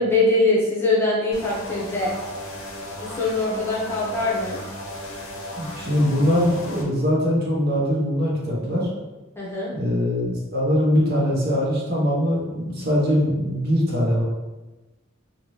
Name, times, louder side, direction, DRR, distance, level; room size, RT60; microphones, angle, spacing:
voice 1, 0.0-2.1 3.0-4.6 9.4-9.7, left 2 dB, 10° left, -6 dB, 0.7 m, -22 dB
sound 1, 1.3-6.8, left 1 dB, 75° left, 0.7 m, -35 dB
voice 2, 5.6-8.9 9.7-14.2, equal, 50° right, -4 dB, 0.9 m, -22 dB
2.6 x 2.6 x 3.1 m, 1.1 s
head